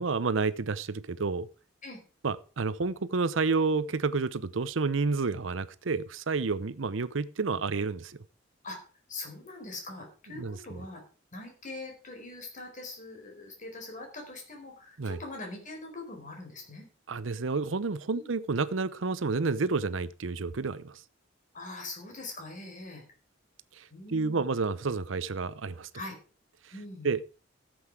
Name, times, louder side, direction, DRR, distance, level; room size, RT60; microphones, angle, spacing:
voice 1, 0.0-1.5 2.2-8.2 10.4-10.6 15.0-15.2 17.1-21.0 23.8-25.9 27.0-27.2, right 4 dB, 80° right, 0.7 m, -30 dB
voice 2, 9.1-11.0 11.3-16.9 18.1-18.3 21.5-23.0 23.9-24.4 25.9-26.2 26.7-27.1, left 2 dB, 40° left, 4.5 m, -42 dB
13.5 x 7.9 x 4.8 m
head